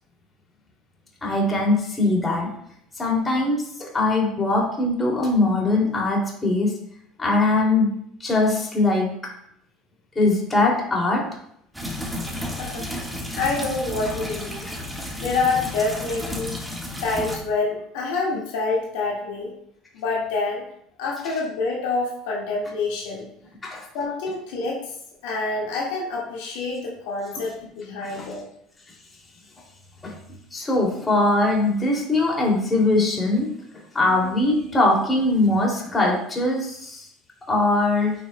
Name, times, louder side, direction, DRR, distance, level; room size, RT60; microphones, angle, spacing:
voice 1, 1.2-2.5 3.0-6.7 7.2-7.9 8.2-9.1 10.1-11.2 23.6-23.9 28.1-28.2 30.0-30.1 30.5-33.5 33.9-37.0 37.5-38.1, left 2 dB, 25° left, -2 dB, 2.7 m, -21 dB
sound 1, 11.7-17.4, left 1 dB, 5° right, 1.5 m, -32 dB
voice 2, 13.3-14.6 15.2-16.6 17.0-19.5 19.9-20.6 21.0-23.2 23.9-24.8 25.2-28.4, left 3 dB, 80° left, -3 dB, 1.8 m, -27 dB
8.9 x 5.8 x 2.2 m, 0.71 s
supercardioid pair, 85°, 0 cm